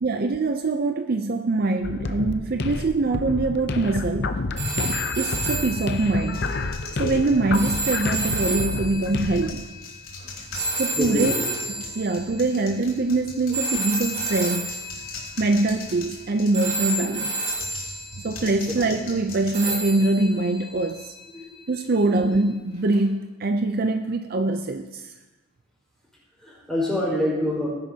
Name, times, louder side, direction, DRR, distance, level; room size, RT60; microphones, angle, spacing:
voice 1, 0.0-4.4 5.2-6.5 7.0-9.7 10.8-11.3 12.0-14.7 15.4-17.4 18.2-21.1 21.7-25.1, right 2 dB, 45° right, 6 dB, 0.5 m, -23 dB
sound 1, 1.8-9.5, left 3 dB, 50° left, 0.6 m, -29 dB
sound 2, 4.6-12.8 13.5-16.2 16.5-18.7 19.5-21.8 22.9-23.1, right 2 dB, 30° right, 2.8 m, -31 dB
sound 3, 6.3-8.4 8.9-16.9 17.4-20.3, left 3 dB, 70° left, 3.1 m, -41 dB
voice 2, 10.6-11.5 13.5-13.6 18.7-18.9 21.3-21.6 22.1-22.4 26.4-27.7, left 1 dB, ahead, -7 dB, 4.6 m, -27 dB
19.0 x 10.5 x 2.8 m, 1.1 s
head